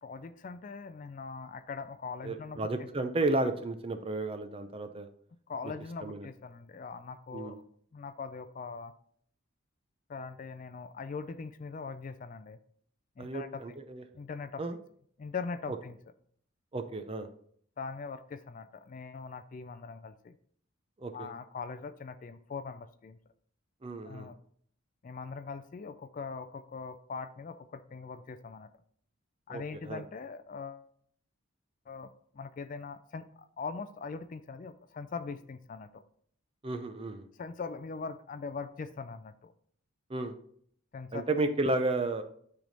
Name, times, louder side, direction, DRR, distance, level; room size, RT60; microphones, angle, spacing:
voice 1, 0.0-2.9 5.5-7.6 7.9-8.9 10.1-12.6 13.2-13.6 14.1-14.6 15.2-16.0 17.8-20.4 21.1-23.2 24.0-24.4 25.0-28.7 29.5-30.9 31.9-36.0 37.4-39.5 40.9-41.3, left 4 dB, 35° left, 11 dB, 0.3 m, -41 dB
voice 2, 2.2-5.1 5.6-5.7 6.0-6.3 7.3-7.6 13.2-14.0 14.6-14.8 16.7-17.3 21.0-21.3 23.8-24.3 29.5-30.0 36.6-37.3 40.1-40.4 41.1-42.2, right 2 dB, 25° right, 8 dB, 0.5 m, -33 dB
9.0 x 3.4 x 3.9 m, 0.62 s
head